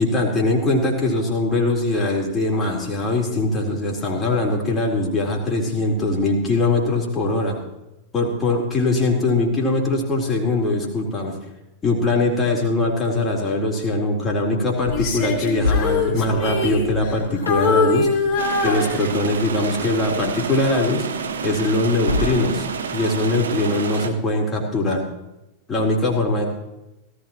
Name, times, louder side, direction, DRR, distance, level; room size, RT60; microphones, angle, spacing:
voice 1, 0.0-7.6 8.1-11.3 11.8-18.2 18.6-21.0 21.4-22.6 22.9-25.0 25.7-26.5, left 2 dB, 20° left, -2 dB, 3.9 m, -21 dB
sound 1, 14.8-22.8, left 2 dB, 85° left, 2.0 m, -32 dB
Female singing, 14.9-17.2 17.5-19.5 20.0-20.3, left 3 dB, 35° left, 2.8 m, -23 dB
sound 2, 18.4-24.1, right 6 dB, 65° right, 1.1 m, -29 dB
18.0 x 15.5 x 3.1 m, 0.94 s
figure-of-eight pair, 90°, 0 cm